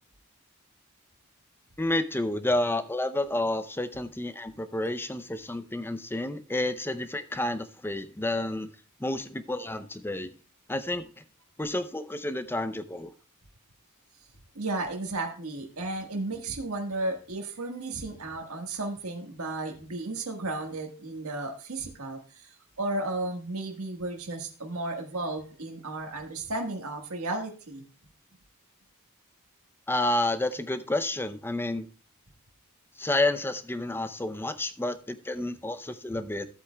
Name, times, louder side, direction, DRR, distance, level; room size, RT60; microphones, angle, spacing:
voice 1, 1.8-8.7 9.0-10.3 10.7-11.1 11.6-13.1 29.9-31.9 33.0-36.5, left 1 dB, 10° left, 0.6 m, -30 dB
voice 2, 14.5-27.8, right 2 dB, 75° right, 1.5 m, -34 dB
15.0 x 8.2 x 2.3 m
head